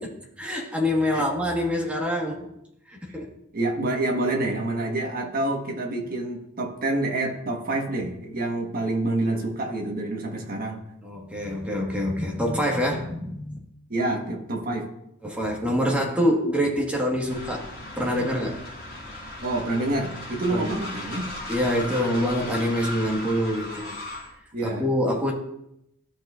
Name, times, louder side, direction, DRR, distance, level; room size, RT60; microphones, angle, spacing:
voice 1, 0.4-2.5 3.1-3.3 11.0-13.6 15.2-17.7 18.0-18.6 20.5-20.7 21.5-24.0 24.6-25.3, equal, 5° right, -1 dB, 1.5 m, -25 dB
voice 2, 3.5-10.8 13.9-14.9 19.4-21.3 21.8-22.1 24.5-24.8, right 2 dB, 45° right, 1 dB, 1.4 m, -27 dB
Train, 17.3-24.3, left 1 dB, 50° left, 3.3 m, -37 dB
13.5 x 6.2 x 2.5 m, 0.79 s
head